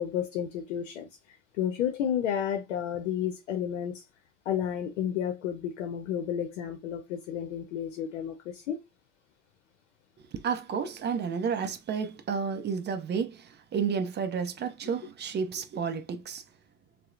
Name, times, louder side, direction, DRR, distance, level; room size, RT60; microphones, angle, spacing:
voice 1, 0.0-4.0 4.5-8.8, left 9 dB, 85° left, 0.6 m, -32 dB
voice 2, 10.3-16.4, right 6 dB, 30° right, 0.5 m, -31 dB
2.8 x 2.0 x 2.3 m
hypercardioid pair, 80°, 35 cm